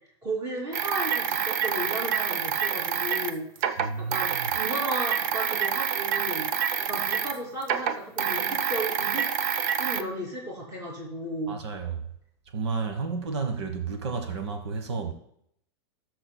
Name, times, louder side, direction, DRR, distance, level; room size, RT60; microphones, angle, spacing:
voice 1, 0.2-6.5 6.8-9.3 9.8-11.6, right 1 dB, 25° right, 2.8 m, -34 dB
sound 1, 0.7-7.4 7.6-10.0, right 8 dB, 45° right, 0.6 m, -27 dB
voice 2, 3.8-4.5 11.5-12.0 12.5-15.1, right 4 dB, 85° right, 1.3 m, -31 dB
18.5 x 6.5 x 2.3 m
supercardioid pair, 155°, 14 cm